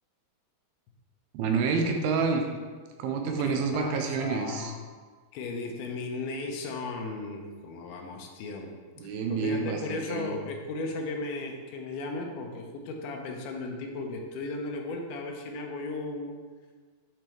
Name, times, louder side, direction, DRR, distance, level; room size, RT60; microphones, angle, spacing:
voice 1, 1.3-2.4 3.0-4.7 9.0-10.4, right 5 dB, 90° right, 3 dB, 2.7 m, -28 dB
voice 2, 3.4-4.8 5.3-8.7 9.0-16.4, left 3 dB, 85° left, 2 dB, 2.7 m, -36 dB
9.1 x 4.4 x 3.0 m, 1.5 s
omnidirectional pair, 4.4 m